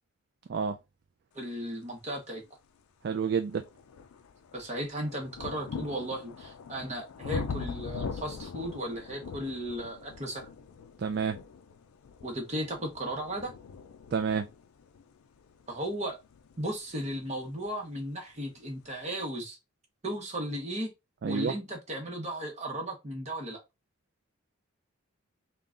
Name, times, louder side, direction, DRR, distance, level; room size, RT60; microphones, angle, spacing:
voice 1, 1.3-2.4 4.5-10.5 12.2-13.5 15.7-16.2 16.6-19.6 20.0-20.9 21.3-23.6, right 1 dB, 30° right, 1.0 m, -35 dB
sound 1, 2.5-2.6 3.1-17.8 18.7-18.8, left 5 dB, 85° left, 0.4 m, -42 dB
voice 2, 3.0-3.6 11.0-11.4 14.1-14.5 21.2-21.5, right 6 dB, 50° right, 0.3 m, -29 dB
3.7 x 2.3 x 3.7 m
head